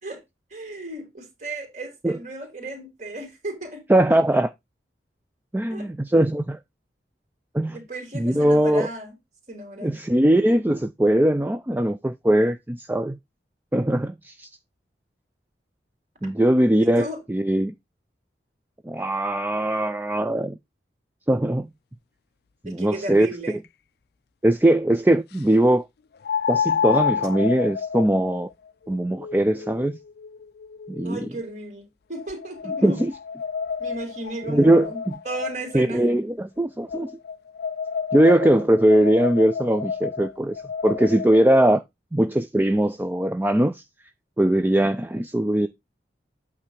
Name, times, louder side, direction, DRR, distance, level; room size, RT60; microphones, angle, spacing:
voice 1, 0.5-3.9 5.7-5.9 7.7-9.1 9.5-9.9 16.8-17.2 22.6-23.6 31.0-33.0 33.8-36.1, right 1 dB, 40° right, 3.2 m, -35 dB
voice 2, 3.9-4.5 5.5-6.6 7.5-7.8 8.1-8.9 9.8-13.2 13.7-14.5 16.2-17.7 18.9-20.6 21.3-21.7 22.6-23.6 24.4-25.8 26.5-28.5 28.9-30.0 30.9-31.2 32.8-33.1 34.5-35.1 35.7-37.1 38.1-40.6 40.8-41.8 42.1-43.8 44.4-45.7, right 1 dB, 10° right, 0.4 m, -20 dB
sound 1, 23.6-23.7 26.2-31.4 32.1-35.9 36.9-41.5, left 6 dB, 60° left, 0.4 m, -30 dB
8.6 x 3.3 x 6.2 m
head